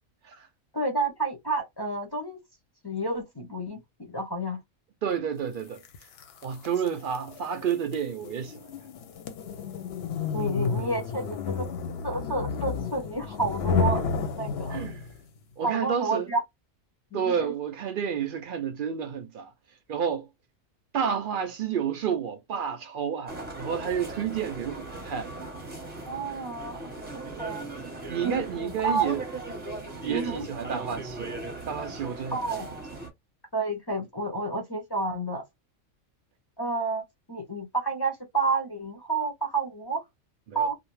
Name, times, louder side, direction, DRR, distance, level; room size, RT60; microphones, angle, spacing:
voice 1, 0.7-2.4 2.8-4.6 10.3-11.7 12.0-14.0 14.4-14.8 15.6-16.4 17.1-17.5 26.0-26.9 27.4-27.6 28.2-29.1 30.1-30.5 32.3-32.7 33.5-35.4 36.6-40.0 40.5-40.7, right 3 dB, 30° left, 0.4 m, -30 dB
voice 2, 5.0-5.8 6.4-8.7 14.7-15.0 15.6-16.3 17.1-19.5 19.9-20.3 20.9-25.3 28.1-29.2 30.0-32.6 40.5-40.7, right 7 dB, 65° right, 0.5 m, -30 dB
sound 1, 5.8-15.2, left 5 dB, 65° left, 0.7 m, -31 dB
sound 2, 23.3-33.1, right 2 dB, 10° right, 0.7 m, -38 dB
2.5 x 2.0 x 3.0 m
omnidirectional pair, 1.4 m